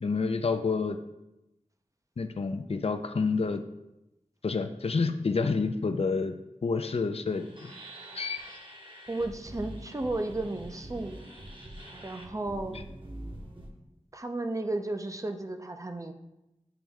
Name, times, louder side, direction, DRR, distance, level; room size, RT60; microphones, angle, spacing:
voice 1, 0.0-1.0 2.2-3.6 4.4-6.3 6.6-7.7 8.1-8.4 12.7-12.8, left 4 dB, 50° left, 8 dB, 0.4 m, -29 dB
sound 1, 7.3-13.7, right 1 dB, 40° right, 1.0 m, -44 dB
voice 2, 9.1-11.1 12.0-12.8 14.1-16.1, right 2 dB, 25° right, 6 dB, 0.5 m, -33 dB
8.7 x 3.1 x 3.5 m, 0.91 s
wide cardioid pair, 50°, 13 cm